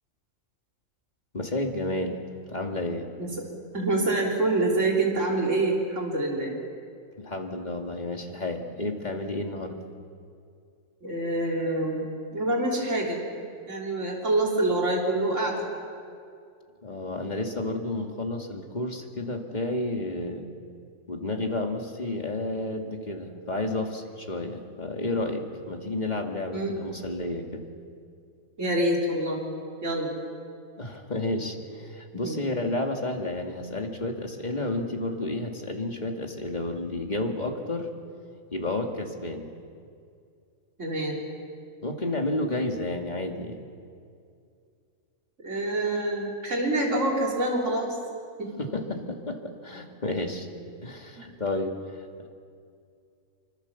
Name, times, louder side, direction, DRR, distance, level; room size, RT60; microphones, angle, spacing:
voice 1, 1.3-2.2 2.5-3.1 7.2-9.8 16.8-20.4 21.1-27.6 30.8-37.9 38.5-39.5 41.8-43.6 48.6-50.5 50.8-51.8, left 2 dB, 35° left, 2 dB, 2.4 m, -31 dB
voice 2, 3.7-6.5 11.0-15.7 26.5-26.8 28.6-29.4 29.8-30.1 32.1-32.4 40.8-41.2 45.4-48.0 48.4-48.7 49.4-49.5 51.2-51.3, right 2 dB, 65° right, -2 dB, 3.8 m, -26 dB
26.5 x 24.0 x 7.1 m, 2.3 s
omnidirectional pair, 1.4 m